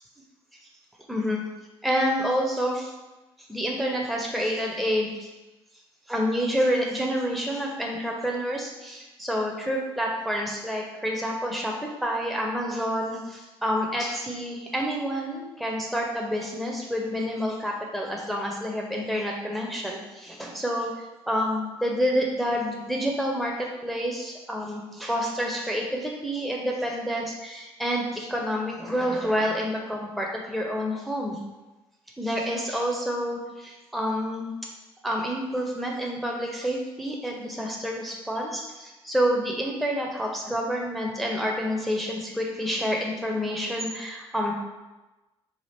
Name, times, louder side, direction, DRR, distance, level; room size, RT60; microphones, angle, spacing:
voice 1, 1.1-1.4 1.8-2.9 3.4-5.3 6.1-20.9 21.3-31.4 32.2-34.5 35.0-44.5, equal, ahead, -1 dB, 0.7 m, -28 dB
3.4 x 2.4 x 4.3 m, 1.1 s
figure-of-eight pair, 45°, 14 cm